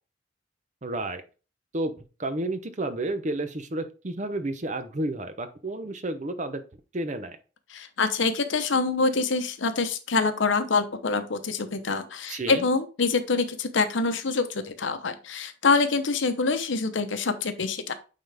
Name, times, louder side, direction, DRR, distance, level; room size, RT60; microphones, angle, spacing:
voice 1, 0.8-1.2 1.7-1.9 2.2-6.6 6.9-7.4 12.3-12.7, right 2 dB, 40° right, 10 dB, 0.7 m, -31 dB
voice 2, 7.7-17.9, left 4 dB, 80° left, 10 dB, 0.8 m, -25 dB
9.0 x 3.8 x 3.4 m, 0.34 s
head